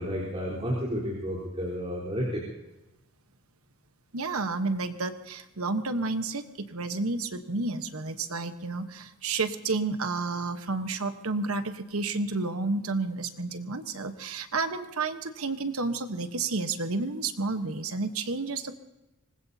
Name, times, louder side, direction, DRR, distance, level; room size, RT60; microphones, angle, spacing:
voice 1, 0.0-2.4, equal, 30° right, -8 dB, 4.0 m, -31 dB
voice 2, 4.1-6.4 6.7-18.8, right 3 dB, 85° right, 9 dB, 1.2 m, -31 dB
25.0 x 19.5 x 2.8 m, 1.0 s
head